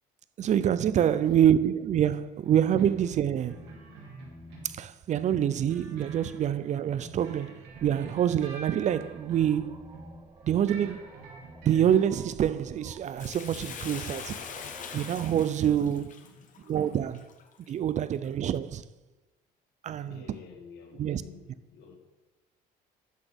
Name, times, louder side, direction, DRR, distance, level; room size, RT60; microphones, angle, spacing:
voice 1, 0.4-3.7 4.6-9.8 10.4-11.0 11.6-14.4 14.9-16.1 16.7-17.3 17.7-18.8 19.8-20.2 21.0-21.2, right 9 dB, 45° right, 0.4 m, -26 dB
voice 2, 1.1-1.4 16.2-16.7 20.1-22.0, left 6 dB, 80° left, 1.7 m, -50 dB
sound 1, 2.0-4.8 5.1-10.2 10.5-11.9, right 2 dB, 85° right, 2.8 m, -47 dB
sound 2, 7.7-15.3, right 3 dB, 25° right, 0.8 m, -53 dB
Bathtub (filling or washing), 13.2-17.7 18.2-18.3, left 6 dB, 50° left, 1.0 m, -42 dB
12.0 x 4.2 x 5.2 m
cardioid pair, 110°, 17 cm